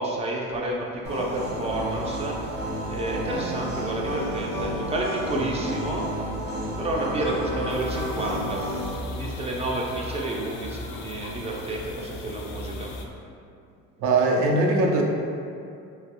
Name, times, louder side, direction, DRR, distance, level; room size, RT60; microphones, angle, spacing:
voice 1, 0.0-2.6 2.9-6.3 6.8-8.7 9.1-12.9, right 2 dB, 20° right, -2 dB, 0.4 m, -30 dB
sound 1, 1.0-8.9, equal, 60° right, 1.2 m, -31 dB
sound 2, 7.7-13.0, left 2 dB, 65° left, 0.4 m, -38 dB
voice 2, 14.0-15.0, right 2 dB, 75° right, 0 dB, 0.6 m, -20 dB
3.0 x 2.6 x 2.9 m, 2.5 s
cardioid pair, 135°, 29 cm